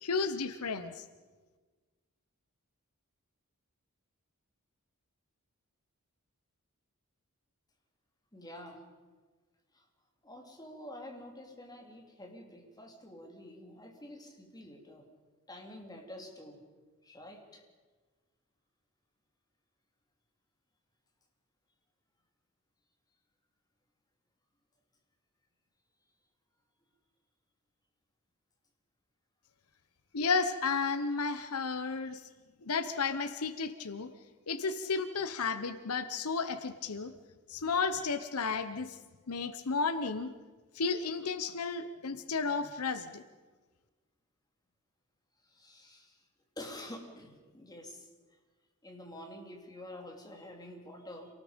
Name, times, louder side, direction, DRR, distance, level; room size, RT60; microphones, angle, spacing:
voice 1, 0.0-1.0 30.1-32.2 32.6-34.1 34.5-37.1 37.5-39.0 39.3-40.3 40.7-43.2, left 4 dB, 75° left, 11 dB, 0.9 m, -33 dB
voice 2, 8.3-8.8 9.7-9.8 10.2-15.1 15.5-16.6 17.0-17.6 45.4-46.2 46.6-48.1 48.8-51.3, left 1 dB, 15° left, 1 dB, 3.1 m, -48 dB
27.0 x 19.0 x 5.2 m, 1.4 s
head